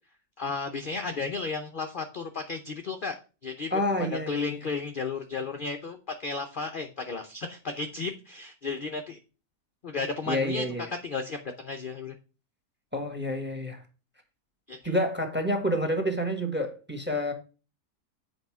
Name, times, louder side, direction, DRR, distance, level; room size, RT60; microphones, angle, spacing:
voice 1, 0.4-3.2 3.4-3.7 4.1-9.2 9.8-10.6 11.0-12.1 14.7-14.8, left 4 dB, 50° left, 0.6 m, -33 dB
voice 2, 3.7-4.6 10.3-10.9 12.9-13.8 14.8-17.3, equal, 5° right, 1.3 m, -28 dB
8.0 x 5.0 x 4.7 m
omnidirectional pair, 1.8 m